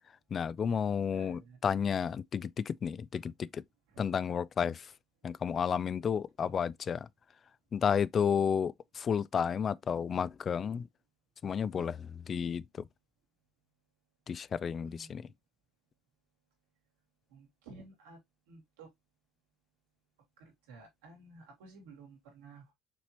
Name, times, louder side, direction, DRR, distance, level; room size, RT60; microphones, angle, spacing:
voice 1, 0.3-3.6 4.0-4.9 5.2-7.1 7.7-10.9 11.4-12.8 14.3-15.3, left 7 dB, 40° left, 0.3 m, -32 dB
voice 2, 1.1-1.6 3.9-4.1 6.4-6.5 14.8-15.3 17.3-18.2 18.5-18.9 20.4-22.7, right 3 dB, 90° right, 2.6 m, -53 dB
5.9 x 2.9 x 3.0 m
supercardioid pair, 95°, 0 cm